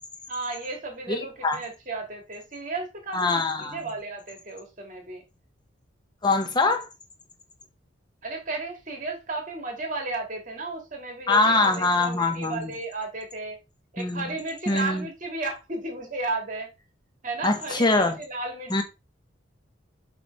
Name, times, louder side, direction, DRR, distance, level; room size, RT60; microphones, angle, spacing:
voice 1, 0.3-5.2 8.2-13.6 13.9-16.7 17.2-18.8, right 3 dB, 40° right, 2.1 m, -34 dB
voice 2, 1.1-1.6 3.1-3.8 6.2-6.9 11.3-12.7 14.0-14.2 14.7-15.1 17.4-18.2 18.7-18.8, left 3 dB, 20° left, 0.7 m, -23 dB
7.5 x 3.2 x 5.2 m
head